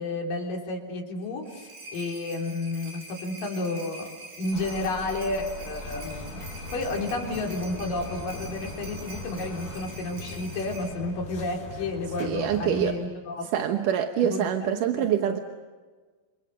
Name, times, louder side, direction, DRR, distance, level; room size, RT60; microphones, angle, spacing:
voice 1, 0.0-6.4 6.7-13.7 14.2-15.4, left 2 dB, 60° left, 1 dB, 5.1 m, -32 dB
sound 1, 1.2-10.9, right 2 dB, 85° right, 7.4 m, -45 dB
sound 2, 4.5-9.8, left 1 dB, 25° left, 3.6 m, -43 dB
sound 3, 5.8-13.0, left 2 dB, 85° left, 5.8 m, -41 dB
voice 2, 12.2-13.0 13.5-15.4, right 9 dB, 65° right, 6 dB, 2.4 m, -25 dB
29.0 x 26.5 x 6.5 m, 1.4 s
omnidirectional pair, 4.5 m